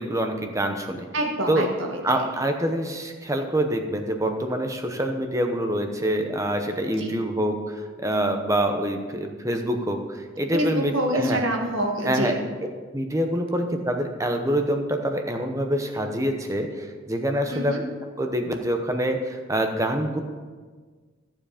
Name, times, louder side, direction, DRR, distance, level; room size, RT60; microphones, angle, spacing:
voice 1, 0.0-1.1 1.5-1.7 2.0-10.0 10.4-11.4 12.0-12.3 12.9-17.7 18.2-20.2, right 1 dB, 15° right, 5 dB, 0.8 m, -25 dB
voice 2, 1.1-2.2 7.0-7.1 10.5-12.4 17.5-17.8, equal, 75° right, 1 dB, 1.6 m, -26 dB
14.0 x 7.4 x 5.1 m, 1.5 s
head